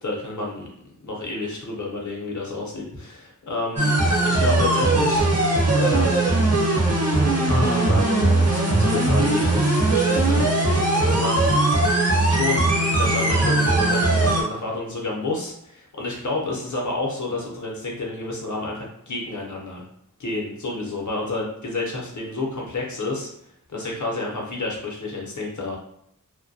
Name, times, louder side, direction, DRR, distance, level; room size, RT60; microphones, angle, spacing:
voice 1, 0.0-3.9 4.2-5.3 5.7-6.3 7.4-11.6 12.3-19.8 20.2-23.3 23.7-25.8, left 2 dB, 65° left, -1 dB, 0.7 m, -30 dB
sound 1, 3.8-14.4, right 2 dB, 50° right, 0.7 m, -20 dB
2.2 x 2.2 x 2.6 m, 0.72 s
wide cardioid pair, 45°, 31 cm